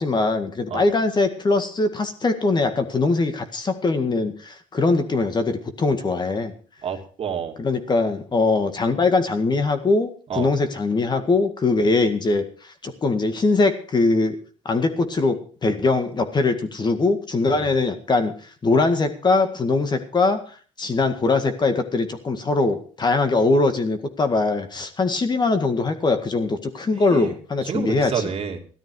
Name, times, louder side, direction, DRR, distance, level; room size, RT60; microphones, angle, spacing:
voice 1, 0.0-6.5 7.6-14.4 14.7-18.3 18.6-20.4 20.8-28.3, left 3 dB, 30° left, 8 dB, 1.9 m, -22 dB
voice 2, 6.8-7.5 10.3-10.5 17.5-17.7 27.1-27.3 27.6-28.6, right 7 dB, 45° right, 2 dB, 2.7 m, -29 dB
14.5 x 12.5 x 4.8 m, 0.42 s
supercardioid pair, 85°, 14 cm